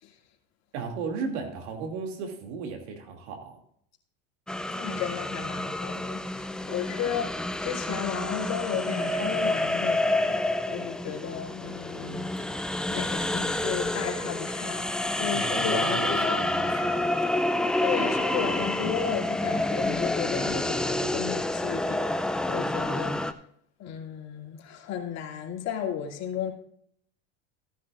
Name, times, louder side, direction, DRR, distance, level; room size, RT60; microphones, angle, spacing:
voice 1, 0.7-3.6 15.3-17.1, right 5 dB, 75° right, 3 dB, 2.6 m, -35 dB
sound 1, 4.5-23.3, left 1 dB, ahead, 0.4 m, -28 dB
voice 2, 4.7-10.4 10.7-16.8 17.8-22.0 22.5-23.5 23.8-26.5, left 8 dB, 50° left, 1 dB, 2.6 m, -34 dB
15.5 x 9.9 x 2.5 m, 0.67 s
supercardioid pair, 105°, 34 cm